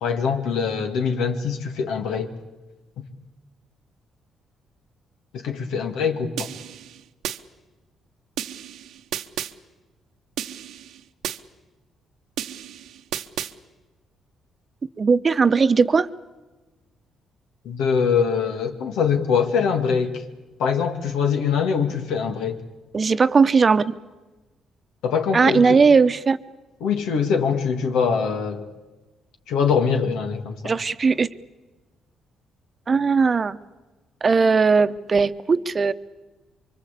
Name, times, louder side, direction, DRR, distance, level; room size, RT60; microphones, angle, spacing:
voice 1, 0.0-2.3 5.3-6.5 17.6-20.2 20.6-22.6 25.0-25.8 26.8-28.6 29.5-30.7, left 6 dB, 90° left, 6 dB, 2.3 m, -23 dB
sound 1, 6.4-7.4 8.4-9.5 10.4-11.4 12.4-13.5, right 10 dB, 80° right, 1.0 m, -32 dB
voice 2, 15.0-16.1 22.9-23.8 25.3-26.4 30.6-31.3 32.9-33.6 34.2-35.9, right 5 dB, 35° right, 12 dB, 0.9 m, -18 dB
25.0 x 24.5 x 8.4 m, 1.2 s
cardioid pair, 90°, 0 cm